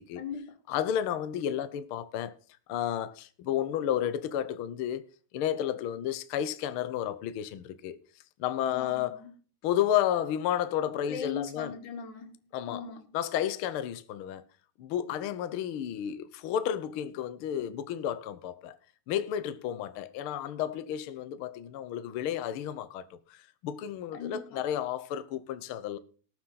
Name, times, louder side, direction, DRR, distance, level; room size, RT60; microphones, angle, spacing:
voice 1, 0.2-0.6 8.7-9.3 11.1-12.3 12.7-13.1 24.1-24.6, left 7 dB, 70° left, 3.5 m, -39 dB
voice 2, 0.7-2.3 2.7-5.1 5.3-8.0 8.4-9.2 9.6-11.7 12.5-12.8 13.1-14.4 14.8-18.8 19.1-26.0, left 10 dB, 90° left, 1.1 m, -32 dB
19.0 x 7.3 x 3.9 m
omnidirectional pair, 3.8 m